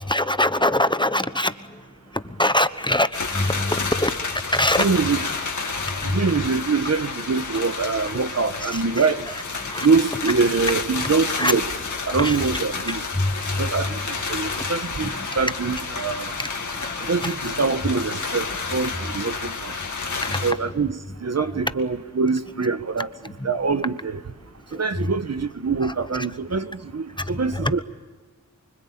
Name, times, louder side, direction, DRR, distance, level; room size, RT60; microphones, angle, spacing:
voice 1, 0.1-1.8 2.1-4.1 4.5-4.9 6.1-6.2 8.6-8.8 9.3-9.9 11.3-11.5 12.2-12.5 12.9-13.3 13.9-14.0 14.5-14.6 15.0-15.3 16.4-16.5 16.8-17.5 20.2-20.7 23.4-23.5 24.9-25.0 25.8-26.3 27.3-27.7, left 1 dB, 15° left, 1.1 m, -24 dB
sound 1, 3.1-20.5, left 4 dB, 70° left, 2.3 m, -30 dB
voice 2, 4.8-5.2 6.0-9.3 9.8-11.7 12.1-13.0 13.6-14.0 14.3-16.3 17.0-19.7 20.4-23.1 23.4-24.2 24.7-27.8, right 4 dB, 55° right, 1.2 m, -24 dB
25.0 x 25.0 x 8.8 m
wide cardioid pair, 80°, 31 cm